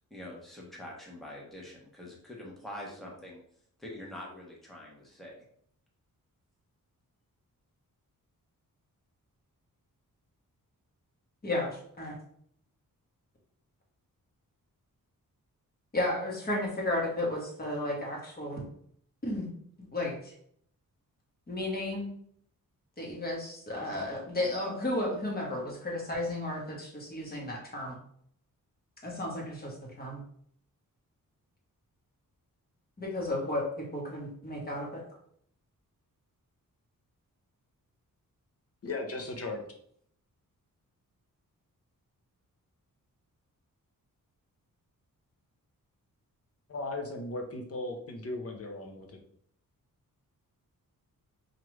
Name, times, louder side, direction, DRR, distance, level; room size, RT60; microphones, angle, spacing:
voice 1, 0.1-3.4 3.8-5.4, left 1 dB, ahead, -3 dB, 0.8 m, -45 dB
voice 2, 11.4-12.2 15.9-18.6 19.2-19.5 19.9-20.3 21.5-22.1 23.0-28.0 29.0-30.2 33.0-35.0, left 1 dB, 25° left, -2 dB, 1.1 m, -33 dB
voice 3, 38.8-39.6 46.7-49.1, left 2 dB, 45° left, 3 dB, 0.7 m, -37 dB
4.6 x 2.5 x 3.1 m, 0.65 s
wide cardioid pair, 155°, 34 cm